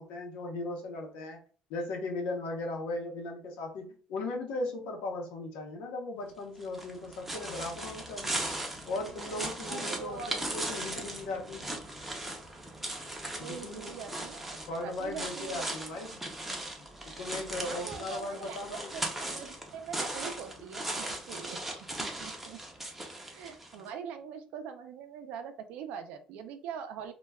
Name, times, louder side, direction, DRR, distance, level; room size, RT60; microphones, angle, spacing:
voice 1, 0.0-1.4 1.7-8.4 8.8-11.6 13.4-14.0 14.5-16.2 17.0-18.9, left 2 dB, 90° left, 2 dB, 0.7 m, -37 dB
sound 1, 6.6-23.8, right 1 dB, 10° right, 0.5 m, -38 dB
voice 2, 9.7-10.4 13.4-15.7 17.6-21.6 22.0-22.6 23.3-27.1, right 7 dB, 80° right, 8 dB, 0.4 m, -43 dB
2.2 x 2.1 x 3.3 m, 0.42 s
cardioid pair, 155°, 2 cm